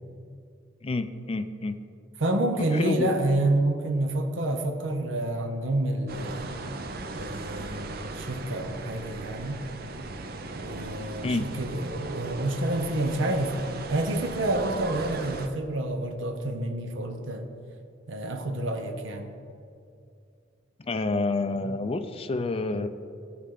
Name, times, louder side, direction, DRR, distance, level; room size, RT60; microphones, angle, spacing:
voice 1, 0.8-1.8 2.7-3.1 11.2-11.5 20.8-22.9, left 3 dB, 30° left, 10 dB, 0.4 m, -28 dB
voice 2, 2.2-6.5 7.1-9.6 10.5-17.5 18.1-19.3, right 1 dB, 75° right, 4 dB, 0.9 m, -28 dB
sound 1, 6.1-15.5, right 3 dB, 50° right, 0.6 m, -38 dB
16.0 x 5.6 x 3.8 m, 2.4 s
head